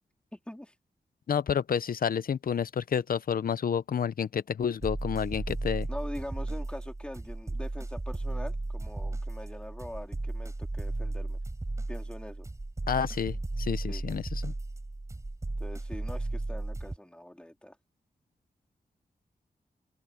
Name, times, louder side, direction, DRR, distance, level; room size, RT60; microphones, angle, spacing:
voice 1, 0.3-0.7 5.9-11.4 11.9-12.5 13.9-14.0 15.6-17.8, left 1 dB, 5° left, 3.6 m, -43 dB
voice 2, 1.3-5.9 12.9-14.5, left 7 dB, 75° left, 0.7 m, -30 dB
sound 1, 4.8-17.0, right 2 dB, 20° right, 4.1 m, -35 dB
open air
wide cardioid pair, 160°, 15 cm